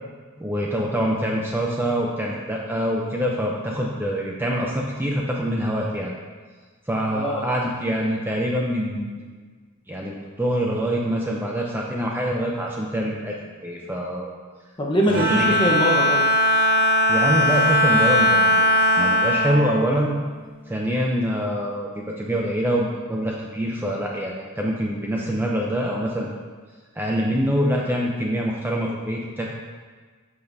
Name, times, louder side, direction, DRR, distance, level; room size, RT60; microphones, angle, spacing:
voice 1, 0.4-6.1 6.9-9.3 9.9-13.3 13.6-14.3 15.1-15.5 17.1-20.2 20.7-26.3 26.9-29.5, equal, 10° right, -2 dB, 0.6 m, -25 dB
voice 2, 7.1-7.5 14.8-16.2, equal, 25° left, -3 dB, 1.0 m, -22 dB
Bowed string instrument, 15.1-20.6, equal, 45° right, 1.6 m, -20 dB
10.5 x 5.2 x 2.7 m, 1.5 s
head